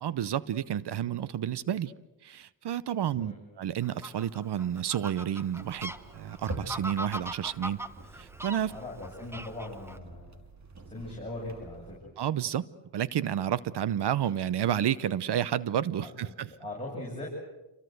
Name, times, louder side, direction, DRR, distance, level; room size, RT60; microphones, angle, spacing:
voice 1, 0.0-1.9 2.2-7.8 8.2-8.7 12.2-12.7 12.9-16.5, right 10 dB, 60° right, 19 dB, 0.9 m, -30 dB
Fowl, 3.8-10.0, right 1 dB, 5° right, 1.2 m, -41 dB
sound 1, 5.6-12.0, right 2 dB, 35° right, 2.9 m, -45 dB
voice 2, 8.7-10.4 10.9-12.1 16.0-16.3 16.6-17.3, left 2 dB, 10° left, -5 dB, 7.9 m, -40 dB
28.0 x 23.5 x 8.0 m, 1.0 s
cardioid pair, 95°, 45 cm